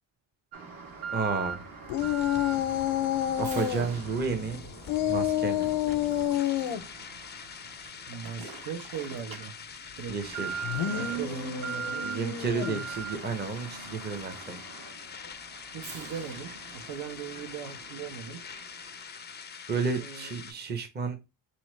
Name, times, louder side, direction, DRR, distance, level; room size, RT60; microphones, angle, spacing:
Alarm, 0.5-19.2 19.5-19.6 20.2-20.3, right 5 dB, 50° right, 1.3 m, -42 dB
sound 1, 0.8-20.5, left 6 dB, 25° left, 0.4 m, -45 dB
voice 1, 1.1-1.7 3.4-4.7 5.1-5.7 10.1-10.7 10.9-11.2 12.0-14.6 19.7-21.2, right 5 dB, 20° right, 0.7 m, -32 dB
sound 2, 1.9-3.9 4.9-6.8 10.6-12.9, left 11 dB, 80° left, 0.6 m, -29 dB
voice 2, 8.1-9.6 10.0-10.1 10.9-12.1 15.7-18.4 20.0-20.3, right 7 dB, 70° right, 1.2 m, -39 dB
4.0 x 3.1 x 3.1 m
cardioid pair, 125°, 45 cm